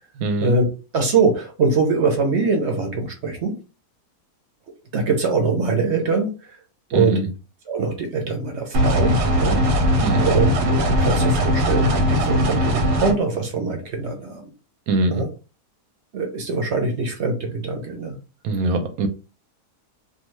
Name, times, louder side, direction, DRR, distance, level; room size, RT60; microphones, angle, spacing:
voice 1, 0.2-0.6 6.9-7.3 10.0-10.2 14.9-15.2 18.4-19.1, right 2 dB, 70° right, 1.1 m, -22 dB
voice 2, 0.9-3.5 4.9-6.6 6.9-7.2 7.7-9.9 10.2-14.5 15.1-15.3 16.1-18.2, right 4 dB, 55° right, 0.9 m, -23 dB
sound 1, 8.7-13.1, equal, 90° right, 1.2 m, -19 dB
2.7 x 2.3 x 3.0 m
omnidirectional pair, 1.7 m